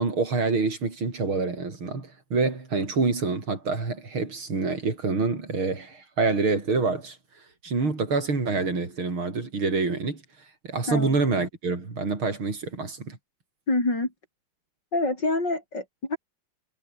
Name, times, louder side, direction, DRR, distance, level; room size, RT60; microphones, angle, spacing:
voice 1, 0.0-7.2 7.6-10.2 10.6-13.2, right 4 dB, 85° right, 5.6 m, -26 dB
voice 2, 13.7-14.1 14.9-16.2, left 2 dB, 55° left, 7.6 m, -26 dB
omnidirectional pair, 2.2 m